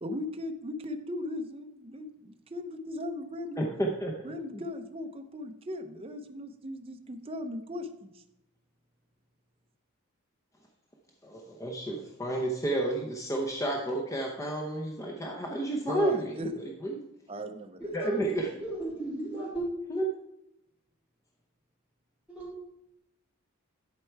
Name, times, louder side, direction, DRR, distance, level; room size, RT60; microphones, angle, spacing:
voice 1, 0.0-3.7 4.2-8.2 15.8-16.5 17.3-18.2, left 1 dB, 25° right, 5 dB, 0.6 m, -38 dB
voice 2, 3.6-4.3 11.2-17.0 17.9-18.5 19.9-20.0, right 1 dB, 15° left, 0 dB, 0.7 m, -31 dB
voice 3, 17.8-18.2 18.6-19.6 22.3-22.5, right 2 dB, 10° right, -8 dB, 3.8 m, -35 dB
11.0 x 4.6 x 4.5 m, 0.83 s
head